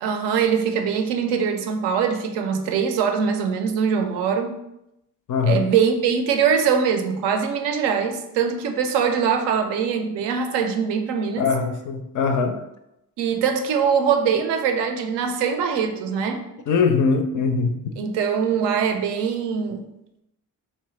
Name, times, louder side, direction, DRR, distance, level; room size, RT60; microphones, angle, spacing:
voice 1, 0.0-4.6 5.4-11.5 13.2-16.5 18.0-19.9, right 6 dB, 60° right, 6 dB, 0.5 m, -22 dB
voice 2, 5.3-5.7 11.4-12.6 16.7-17.7, left 5 dB, 40° left, 6 dB, 0.4 m, -21 dB
2.9 x 2.1 x 3.1 m, 0.86 s
hypercardioid pair, 40°, 50 cm